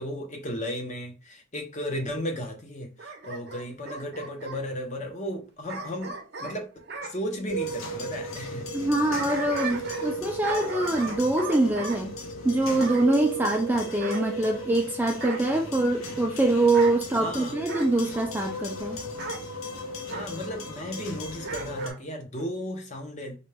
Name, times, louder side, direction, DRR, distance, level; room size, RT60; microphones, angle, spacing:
voice 1, 0.0-6.7 7.0-8.7 17.2-17.6 20.0-23.4, equal, 35° left, 0.7 m, -35 dB
Bark / Growling, 3.0-4.6 5.7-7.1 8.8-10.2 10.4-12.0 12.8-13.1 14.0-14.8 15.2-15.5 16.6-17.0 17.7-18.0 19.2-19.4 20.1-20.3 21.4-22.0 22.4-22.5, right 4 dB, 50° right, 0.6 m, -37 dB
sound 1, 7.5-21.9, equal, 80° left, 0.7 m, -36 dB
voice 2, 8.7-12.1 12.4-19.0, right 2 dB, 10° right, 0.3 m, -24 dB
4.0 x 2.2 x 3.3 m
head